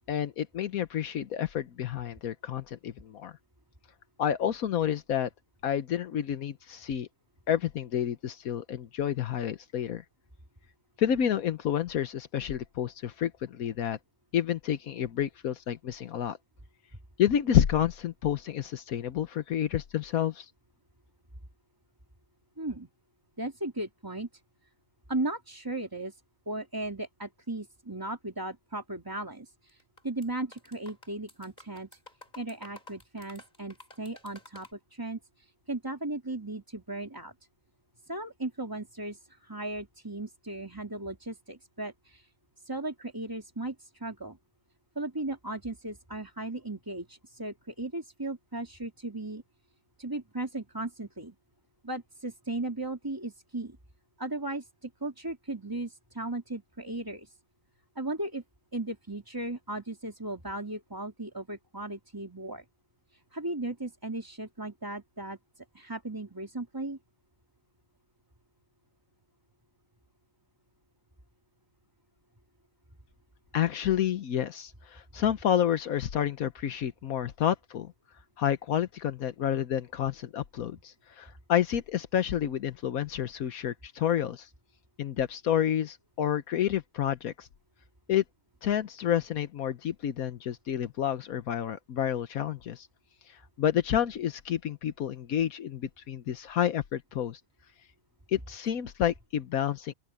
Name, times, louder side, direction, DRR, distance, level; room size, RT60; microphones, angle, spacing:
voice 1, 0.1-3.3 4.2-5.3 5.6-7.1 7.5-10.0 11.0-14.0 14.3-16.4 17.2-20.5 73.5-77.9 78.4-84.5 85.0-87.5 88.1-88.2 88.6-92.9 93.3-97.4 98.3-99.9, left 10 dB, 80° left, 1.4 m, -29 dB
voice 2, 22.6-22.9 23.4-24.3 25.1-26.2 26.5-32.0 32.3-37.3 38.1-42.3 42.6-44.4 44.9-49.4 50.0-51.3 51.8-53.8 54.2-57.4 58.0-58.4 58.7-62.6 63.1-67.0, right 2 dB, 15° right, 2.9 m, -36 dB
sound 1, 29.7-30.3 30.5-34.7, left 2 dB, 30° left, 7.1 m, -51 dB
open air
omnidirectional pair, 1.5 m